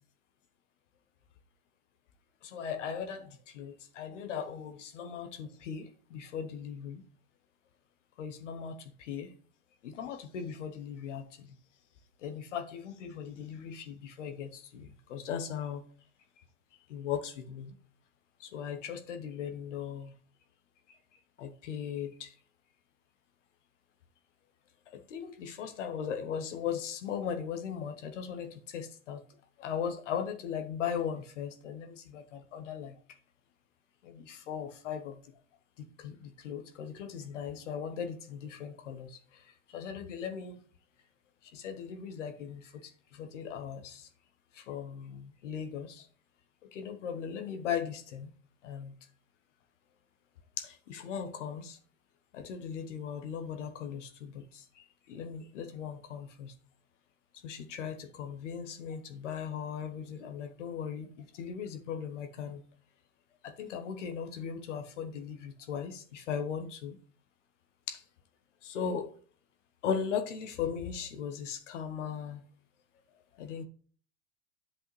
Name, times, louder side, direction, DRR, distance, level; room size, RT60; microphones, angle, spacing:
voice 1, 2.4-3.3 3.5-7.0 8.2-9.3 9.8-11.2 12.2-15.8 16.9-17.7 18.4-20.1 21.4-22.3 25.1-29.2 29.6-32.9 34.0-35.1 36.0-39.1 39.7-40.6 41.5-42.6 43.2-44.1 44.6-46.0 46.7-48.3 48.6-48.9 50.6-51.8 52.3-54.3 55.1-56.5 57.4-61.1 61.4-62.6 63.4-67.0 67.9-68.0 68.6-69.1 69.8-72.4 73.4-73.6, left 7 dB, 80° left, 1.0 m, -38 dB
9.8 x 5.5 x 3.2 m
hypercardioid pair, 100°, 35 cm